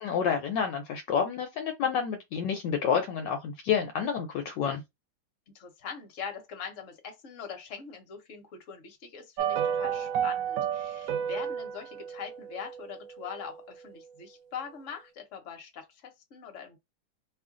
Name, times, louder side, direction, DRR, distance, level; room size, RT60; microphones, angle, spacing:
voice 1, 0.0-4.8, left 7 dB, 75° left, 1.2 m, -29 dB
voice 2, 5.5-16.8, left 7 dB, 50° left, 1.1 m, -42 dB
sound 1, 9.4-13.7 13.9-14.0, right 8 dB, 65° right, 0.9 m, -32 dB
3.1 x 2.4 x 3.6 m
omnidirectional pair, 2.0 m